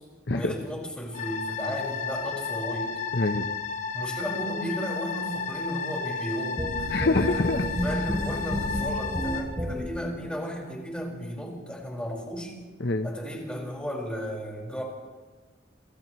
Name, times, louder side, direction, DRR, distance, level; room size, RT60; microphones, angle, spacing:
voice 1, 0.3-2.9 3.9-6.9 7.3-7.4 7.8-12.6 13.0-14.8, equal, 5° left, -2 dB, 5.1 m, -34 dB
sound 1, 1.1-9.4, left 5 dB, 45° left, 5.0 m, -33 dB
voice 2, 3.1-3.5 6.9-7.7 12.8-13.1, left 2 dB, 60° left, 6 dB, 1.0 m, -25 dB
sound 2, 6.6-10.1, equal, 20° right, 3.5 m, -31 dB
29.0 x 28.0 x 3.2 m, 1.3 s
head